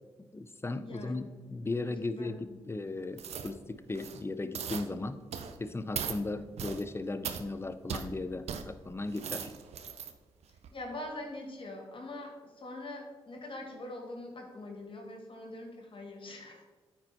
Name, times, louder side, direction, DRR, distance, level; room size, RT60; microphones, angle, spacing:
voice 1, 0.2-5.2 5.6-9.5, left 2 dB, 20° left, 12 dB, 0.6 m, -37 dB
voice 2, 0.8-1.2 1.8-2.6 10.7-16.6, left 1 dB, 50° left, 2 dB, 2.0 m, -43 dB
sound 1, 3.2-3.5 3.9-4.2 4.5-4.9 5.3-5.6 5.9-6.2 6.6-6.8 7.2-7.4 7.9-8.1 8.5-8.6 9.0-10.1 10.6-10.7, right 7 dB, 70° right, 0.7 m, -38 dB
9.3 x 4.6 x 4.5 m, 1.4 s
supercardioid pair, 45°, 11 cm